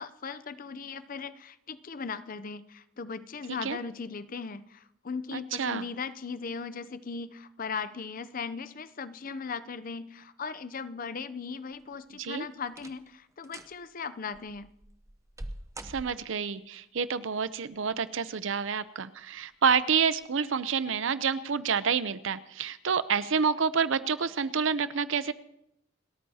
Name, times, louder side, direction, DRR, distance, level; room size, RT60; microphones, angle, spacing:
voice 1, 0.0-14.7, left 5 dB, 40° left, 14 dB, 0.6 m, -38 dB
voice 2, 5.3-5.8 12.2-12.5 15.8-25.3, right 6 dB, 65° right, 15 dB, 0.6 m, -28 dB
sound 1, 11.7-12.2 12.7-13.1 13.4-13.8 14.3-16.5 17.7-18.3 18.8-18.9 19.6-19.8 20.2-20.3, right 1 dB, 15° right, 0.7 m, -45 dB
29.0 x 13.5 x 2.8 m, 0.80 s
head